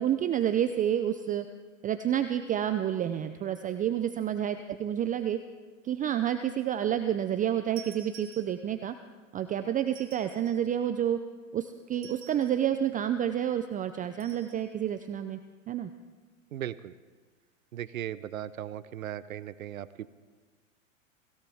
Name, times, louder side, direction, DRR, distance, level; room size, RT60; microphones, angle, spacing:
voice 1, 0.0-1.4 1.8-5.4 5.8-8.9 9.3-11.2 11.5-15.4 15.7-15.9, right 10 dB, 20° right, 9 dB, 0.6 m, -29 dB
sound 1, 7.8-8.9 9.9-10.7 11.9-12.7 14.2-14.6, right 10 dB, 45° right, 4.4 m, -51 dB
voice 2, 16.5-16.9 17.7-20.1, right 11 dB, 85° right, 16 dB, 0.8 m, -37 dB
22.5 x 17.0 x 3.5 m, 1.4 s
hypercardioid pair, 105°, 40 cm